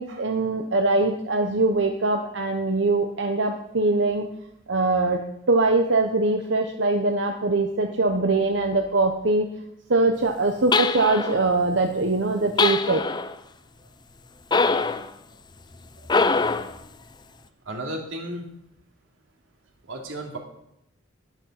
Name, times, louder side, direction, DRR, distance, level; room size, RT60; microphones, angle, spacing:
voice 1, 0.0-4.2 4.7-5.2 5.5-9.5 9.9-13.0, right 2 dB, 65° right, 4 dB, 1.0 m, -22 dB
sound 1, 10.7-11.5 12.6-13.3 14.5-15.1 16.1-16.8, left 4 dB, 20° left, 0.5 m, -23 dB
voice 2, 17.7-18.4 19.9-20.4, right 1 dB, 90° right, 1 dB, 3.0 m, -33 dB
11.5 x 10.5 x 5.8 m, 0.79 s
head